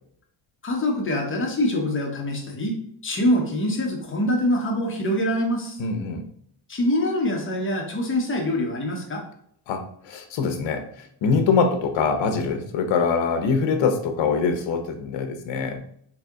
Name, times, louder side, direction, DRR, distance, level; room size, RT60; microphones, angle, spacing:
voice 1, 0.6-5.8 6.7-9.2, left 1 dB, 25° left, 0 dB, 0.8 m, -24 dB
voice 2, 5.8-6.3 9.7-15.8, left 5 dB, 65° left, 7 dB, 0.7 m, -24 dB
4.0 x 2.9 x 3.5 m, 0.65 s
cardioid pair, 155°, 48 cm